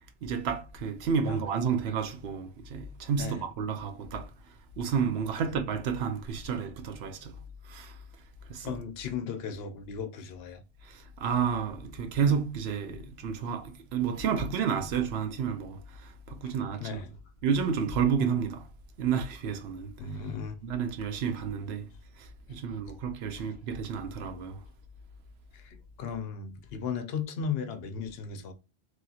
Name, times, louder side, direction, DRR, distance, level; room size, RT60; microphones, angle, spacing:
voice 1, 0.2-4.3 4.8-7.4 7.7-7.9 8.5-8.7 10.9-15.8 16.3-17.0 17.4-18.6 19.0-19.9 20.6-21.9 22.5-24.6, right 6 dB, 75° right, 0.8 m, -30 dB
voice 2, 8.6-10.6 16.4-17.2 20.0-20.6 22.5-22.6 23.3-23.5 25.5-28.5, left 6 dB, 70° left, 0.8 m, -36 dB
3.0 x 2.7 x 2.3 m
omnidirectional pair, 1.1 m